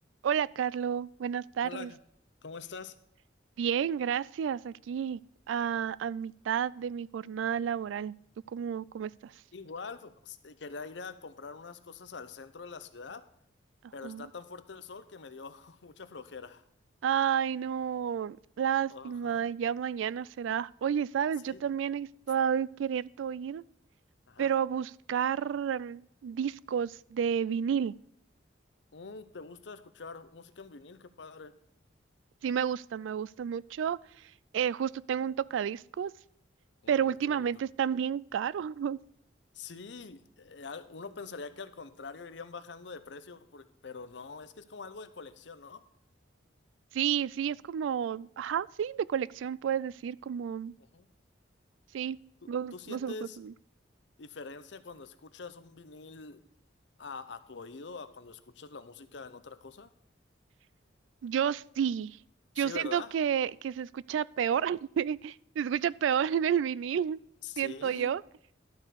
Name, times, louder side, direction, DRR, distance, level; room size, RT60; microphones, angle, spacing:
voice 1, 0.2-1.9 3.6-5.2 5.5-8.2 8.5-9.3 14.0-14.3 17.0-23.6 24.4-27.9 32.4-34.0 34.5-36.1 36.9-39.0 46.9-50.7 51.9-52.2 52.5-53.5 61.2-62.2 62.6-67.2 67.6-68.2, right 8 dB, 80° right, 0.3 m, -31 dB
voice 2, 1.6-2.0 2.4-2.9 9.5-13.2 13.9-16.6 18.9-19.4 21.5-21.6 24.3-24.5 28.9-31.5 36.8-37.5 39.5-45.8 50.9-51.1 52.4-53.4 54.2-56.4 57.0-59.9 62.6-63.1 67.4-68.1, left 4 dB, 65° left, 0.7 m, -45 dB
12.0 x 4.6 x 6.8 m
head